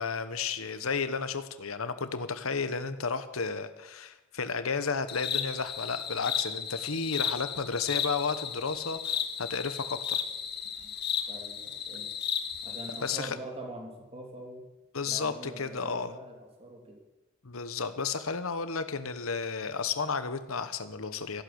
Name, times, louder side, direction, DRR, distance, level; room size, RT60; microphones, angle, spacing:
voice 1, 0.0-10.2 13.0-13.4 14.9-16.2 17.4-21.4, left 5 dB, 85° left, 11 dB, 1.1 m, -33 dB
sound 1, 5.1-13.2, left 8 dB, 50° left, 1.6 m, -34 dB
voice 2, 11.3-12.1 12.6-14.7 15.0-17.0, right 1 dB, 30° right, 1 dB, 3.1 m, -44 dB
15.0 x 11.5 x 7.9 m, 1.0 s
head